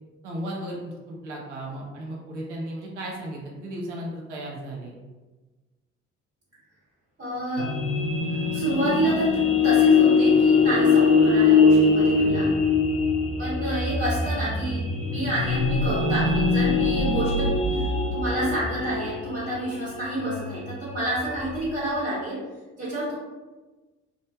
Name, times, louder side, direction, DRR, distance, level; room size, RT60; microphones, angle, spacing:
voice 1, 0.2-5.0, right 1 dB, 90° right, -2 dB, 0.6 m, -35 dB
voice 2, 7.2-7.8 8.3-12.6 13.4-22.4 22.8-23.1, right 1 dB, 45° right, -11 dB, 1.3 m, -29 dB
sound 1, 7.6-21.7, left 4 dB, 60° left, 0.6 m, -22 dB
2.4 x 2.1 x 2.6 m, 1.2 s
hypercardioid pair, 50°, 34 cm